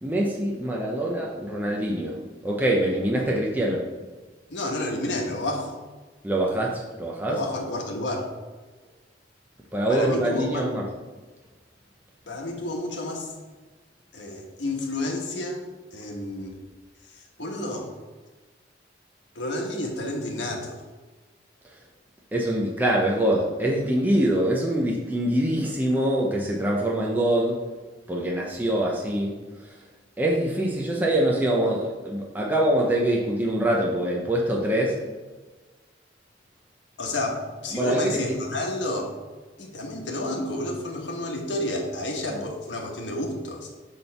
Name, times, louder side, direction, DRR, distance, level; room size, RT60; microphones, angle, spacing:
voice 1, 0.0-2.1 2.4-3.8 6.2-7.4 9.7-10.8 22.3-27.6 28.1-29.3 30.2-35.0 37.7-38.2 42.3-42.4, right 1 dB, 10° right, -3 dB, 0.8 m, -24 dB
voice 2, 4.5-5.8 7.3-8.3 9.9-10.7 12.3-13.3 14.1-15.6 15.9-16.6 17.1-17.9 19.3-20.8 37.0-39.1 39.6-43.7, left 1 dB, 75° left, 1 dB, 1.3 m, -30 dB
6.7 x 3.5 x 5.7 m, 1.3 s
head